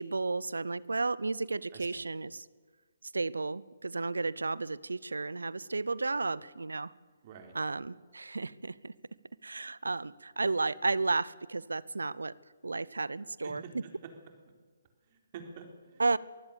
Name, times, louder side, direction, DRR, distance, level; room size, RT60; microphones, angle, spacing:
voice 1, 0.0-2.5 3.1-6.9 7.5-8.9 9.4-12.3 12.6-13.8 16.0-16.2, right 3 dB, 80° right, 21 dB, 0.7 m, -33 dB
voice 2, 1.7-2.0 7.2-7.5 13.4-13.7 14.0-14.1 15.1-16.2, right 6 dB, 40° right, 5 dB, 4.0 m, -48 dB
23.0 x 16.0 x 7.0 m, 1.5 s
figure-of-eight pair, 140°, 0 cm